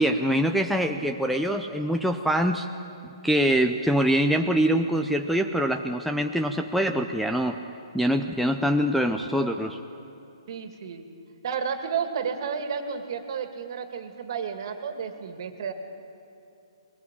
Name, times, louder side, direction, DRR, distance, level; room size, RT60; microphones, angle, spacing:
voice 1, 0.0-2.7 3.2-7.6 7.9-9.8, equal, ahead, 6 dB, 0.6 m, -24 dB
voice 2, 10.5-11.0 11.4-15.7, right 6 dB, 50° right, 6 dB, 2.3 m, -32 dB
21.5 x 19.0 x 8.5 m, 2.7 s
hypercardioid pair, 155°, 3 cm